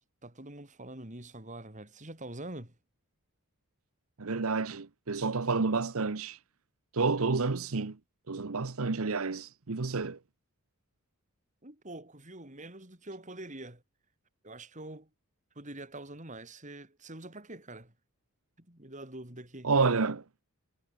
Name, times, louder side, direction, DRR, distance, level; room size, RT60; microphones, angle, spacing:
voice 1, 0.2-2.8 11.6-13.8 14.4-15.1 15.5-17.9 18.6-19.7, right 1 dB, 35° right, 4.4 m, -45 dB
voice 2, 4.2-6.4 6.9-8.0 8.3-10.2 19.6-20.2, right 4 dB, 65° right, 0.9 m, -29 dB
head